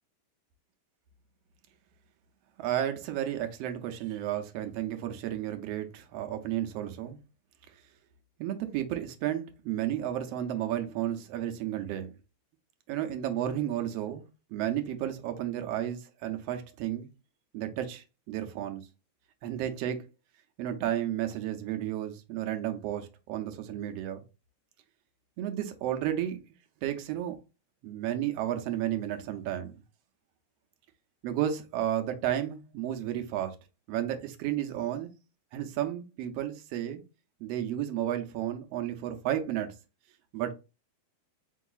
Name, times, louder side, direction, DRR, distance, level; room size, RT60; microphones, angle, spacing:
voice 1, 2.6-7.2 8.4-12.1 12.9-14.2 14.5-17.1 17.5-18.8 19.4-20.0 20.6-24.2 25.4-26.4 26.8-27.4 27.8-29.8 31.2-33.5 33.9-35.1 35.5-37.0 37.4-39.7 40.3-40.5, right 11 dB, 75° right, 1.5 m, -32 dB
4.5 x 3.9 x 2.3 m
omnidirectional pair, 3.3 m